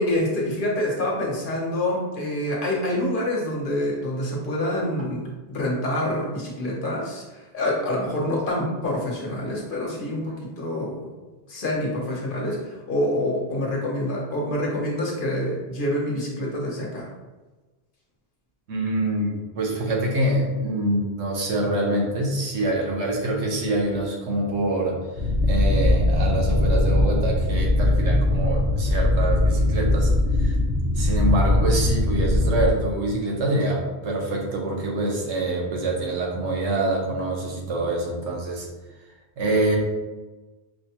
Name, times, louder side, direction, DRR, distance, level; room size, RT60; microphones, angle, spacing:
voice 1, 0.0-11.0 11.5-17.1, left 1 dB, 55° left, -3 dB, 1.0 m, -26 dB
voice 2, 18.7-25.0 25.4-30.5 31.0-38.7 39.4-39.8, right 2 dB, 90° right, -1 dB, 1.1 m, -25 dB
sound 1, 25.2-32.7, left 1 dB, 40° right, 1.3 m, -21 dB
4.8 x 2.2 x 2.8 m, 1.2 s
omnidirectional pair, 1.1 m